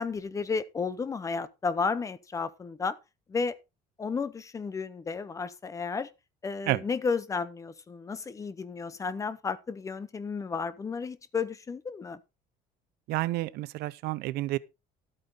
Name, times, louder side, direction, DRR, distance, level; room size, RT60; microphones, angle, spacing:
voice 1, 0.0-3.0 3.3-3.6 4.0-6.1 6.4-12.2, left 5 dB, 20° left, 0.8 m, -32 dB
voice 2, 13.1-14.6, right 18 dB, 75° right, 0.7 m, -30 dB
13.5 x 8.9 x 3.9 m
cardioid pair, 165°, 17 cm